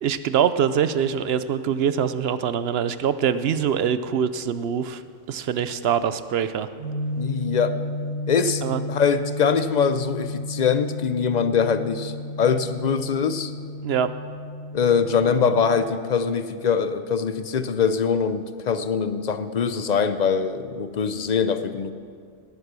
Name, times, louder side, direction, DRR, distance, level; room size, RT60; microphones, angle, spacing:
voice 1, 0.0-5.0 5.3-6.7 8.6-8.8 13.8-14.1, right 8 dB, 60° right, 13 dB, 0.8 m, -24 dB
sound 1, 6.8-15.8, left 1 dB, 90° left, 3.2 m, -33 dB
voice 2, 7.2-7.8 8.3-8.6 8.9-13.5 14.7-21.9, left 6 dB, 45° left, 11 dB, 0.6 m, -23 dB
19.0 x 8.1 x 6.1 m, 2.2 s
omnidirectional pair, 1.3 m